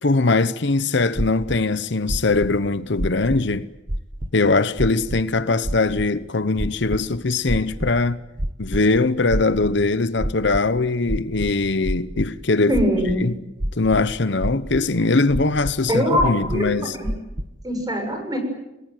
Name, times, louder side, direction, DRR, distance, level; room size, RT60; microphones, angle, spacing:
voice 1, 0.0-3.7 4.3-8.2 8.6-12.8 13.2-13.4 13.7-17.0, left 3 dB, 65° left, 0.9 m, -21 dB
sound 1, 1.1-1.6 2.1-2.5 3.0-3.5 3.9-4.3 4.8-5.2 5.6-6.0 6.6-7.0 7.5-8.0 8.4-8.8 9.3-9.8 10.2-10.6 11.1-12.3 12.7-13.2 13.6-14.1 14.4-14.9 15.3-15.7 16.2-16.7 17.0-17.5, right 1 dB, 50° right, 1.5 m, -27 dB
voice 2, 12.7-13.3 15.9-16.7 16.9-17.1 17.6-18.4, equal, 20° right, 7.0 m, -22 dB
28.5 x 19.5 x 9.2 m
head